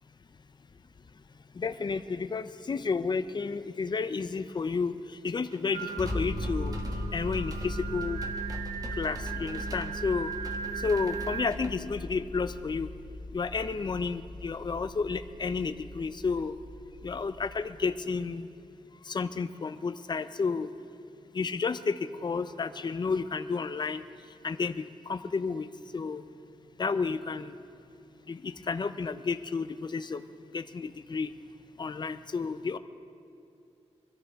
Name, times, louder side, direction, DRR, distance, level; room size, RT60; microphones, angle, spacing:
voice 1, 1.6-5.0 5.2-6.7 7.1-8.2 9.0-10.3 10.8-12.9 13.3-16.5 17.0-18.5 19.1-20.7 21.3-24.0 24.4-25.7 25.9-26.2 26.8-27.5 28.3-30.2 30.5-31.3 31.8-32.8, left 4 dB, 40° left, 11 dB, 0.5 m, -31 dB
sound 1, 5.5-11.7, right 1 dB, 30° right, 1.2 m, -50 dB
Singing, 5.7-11.5, right 6 dB, 70° right, 0.7 m, -38 dB
sound 2, 6.0-17.9, left 2 dB, 20° left, 1.2 m, -39 dB
23.5 x 13.5 x 3.6 m, 2.5 s
wide cardioid pair, 150°, 12 cm